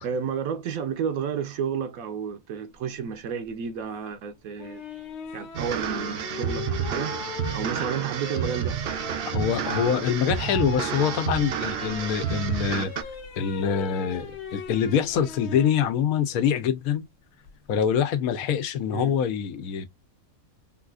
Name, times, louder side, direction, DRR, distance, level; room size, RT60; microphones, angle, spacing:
voice 1, 0.0-4.8 5.3-7.1 7.5-8.8 18.9-19.1, right 7 dB, 80° right, 1.1 m, -31 dB
sound 1, 4.6-15.8 17.4-17.9, left 6 dB, 55° left, 1.0 m, -39 dB
sound 2, 5.5-13.0, right 8 dB, 65° right, 0.6 m, -30 dB
voice 2, 9.2-12.9 13.4-17.1 17.7-19.9, left 8 dB, 80° left, 1.1 m, -25 dB
3.8 x 2.5 x 2.3 m
omnidirectional pair, 1.5 m